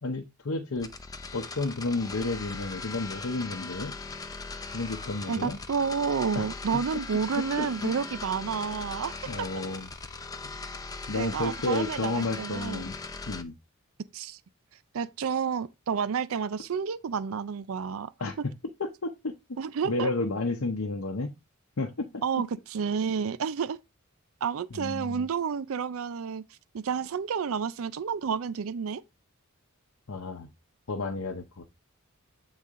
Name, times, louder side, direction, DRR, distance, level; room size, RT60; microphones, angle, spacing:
voice 1, 0.0-0.9 1.3-3.9 4.7-5.6 6.3-6.5 6.7-6.8 7.3-7.9 9.3-9.9 11.1-12.9 13.3-13.5 18.2-18.5 18.8-19.6 19.8-21.3 21.8-22.4 24.7-25.3 30.1-30.5 30.9-31.6, left 3 dB, 70° left, 0.8 m, -31 dB
sound 1, 0.8-13.4, left 4 dB, 15° left, 0.6 m, -39 dB
voice 2, 5.3-9.5 11.1-12.8 14.1-14.4 14.9-18.1 19.6-20.1 22.2-23.8 24.4-26.4 26.7-29.0, right 6 dB, 65° right, 0.4 m, -30 dB
8.2 x 4.1 x 3.6 m
head